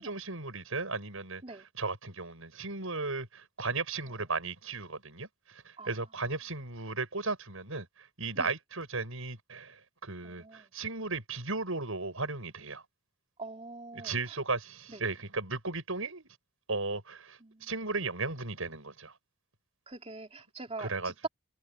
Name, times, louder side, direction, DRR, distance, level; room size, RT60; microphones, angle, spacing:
voice 1, 0.0-1.4 1.8-7.9 8.2-12.8 13.9-16.3 16.7-19.1 20.8-21.3, right 3 dB, 70° right, 7.1 m, -36 dB
voice 2, 10.2-10.7 13.4-14.4 14.9-15.0 17.4-17.7 19.9-21.3, right 3 dB, 30° right, 3.4 m, -43 dB
head